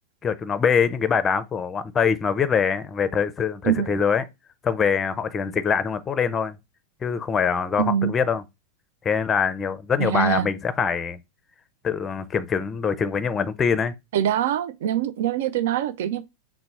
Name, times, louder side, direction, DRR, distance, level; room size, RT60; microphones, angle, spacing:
voice 1, 0.2-4.3 4.6-6.6 7.0-8.4 9.0-11.2 11.8-13.9, left 6 dB, 20° left, 0.5 m, -24 dB
voice 2, 3.6-3.9 7.8-8.1 10.0-10.5 14.1-16.2, right 10 dB, 55° right, 0.4 m, -24 dB
4.0 x 2.1 x 4.4 m
figure-of-eight pair, 90°, 0 cm